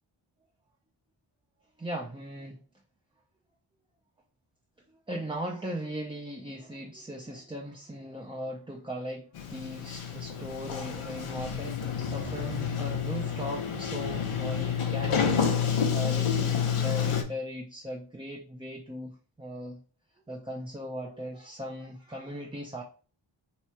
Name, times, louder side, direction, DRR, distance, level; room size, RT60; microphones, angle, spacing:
voice 1, 1.8-2.6 4.9-19.8 20.3-22.8, equal, 10° right, -1 dB, 0.5 m, -38 dB
Sliding door, 9.3-17.2, left 7 dB, 85° left, 0.8 m, -29 dB
2.9 x 2.4 x 4.3 m, 0.38 s
wide cardioid pair, 50°, 50 cm